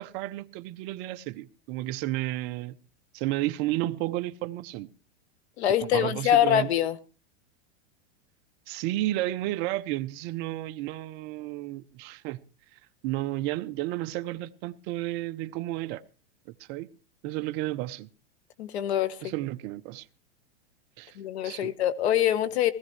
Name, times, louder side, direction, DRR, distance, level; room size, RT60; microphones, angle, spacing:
voice 1, 0.0-2.7 3.1-4.9 5.8-6.7 8.7-12.4 12.7-16.0 16.6-16.9 17.2-18.1 19.2-20.1 21.0-21.2 21.4-21.7, right 16 dB, 30° right, 0.6 m, -32 dB
voice 2, 5.6-7.0 18.6-19.3 21.1-22.7, left 11 dB, 70° left, 1.3 m, -24 dB
19.5 x 14.5 x 3.1 m
supercardioid pair, 150°, 34 cm